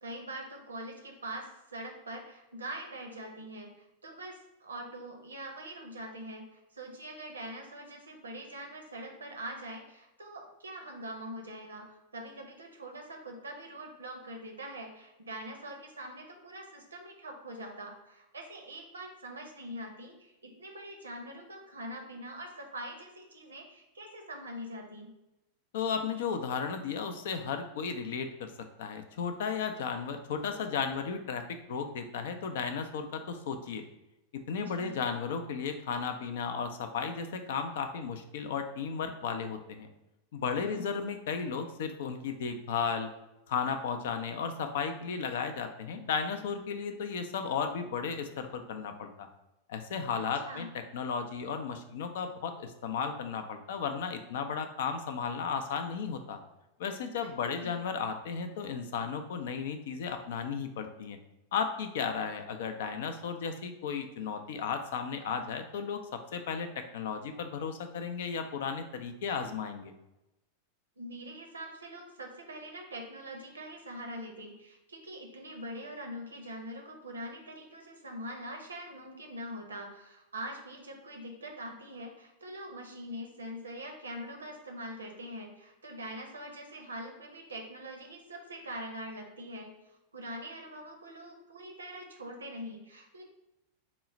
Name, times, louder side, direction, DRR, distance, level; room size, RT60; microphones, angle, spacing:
voice 1, 0.0-3.7 4.0-25.1 34.6-35.0 40.6-41.0 50.2-50.7 57.2-57.8 71.0-89.7 90.1-93.2, right 1 dB, 75° right, 2 dB, 0.6 m, -43 dB
voice 2, 25.7-28.5 28.8-33.8 34.5-39.9 40.3-43.1 43.5-49.3 49.7-50.7 50.9-56.4 56.8-61.2 61.5-69.9, left 6 dB, 55° left, 7 dB, 0.4 m, -34 dB
3.7 x 2.0 x 4.2 m, 0.96 s
figure-of-eight pair, 90°, 0 cm